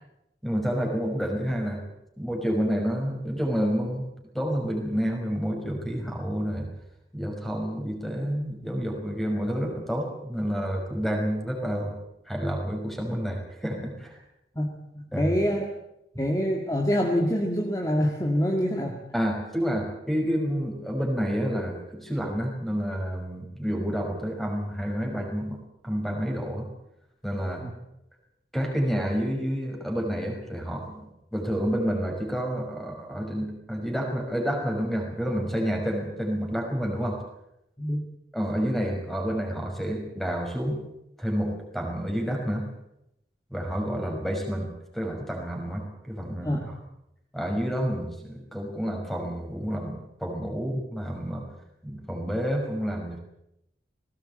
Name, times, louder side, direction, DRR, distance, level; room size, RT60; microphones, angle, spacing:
voice 1, 0.4-1.8 2.2-4.0 4.3-6.7 7.1-11.9 12.3-14.2 15.1-15.3 19.1-26.7 27.2-27.6 28.5-31.0 31.3-37.2 38.3-40.8 41.2-42.7 43.5-46.6 47.3-51.5 51.8-53.2, equal, ahead, 2 dB, 5.5 m, -29 dB
voice 2, 14.9-15.7 16.2-19.0 27.6-27.7 37.8-38.0 46.4-46.7, equal, 20° left, 1 dB, 2.2 m, -25 dB
19.5 x 17.5 x 8.9 m, 0.84 s
head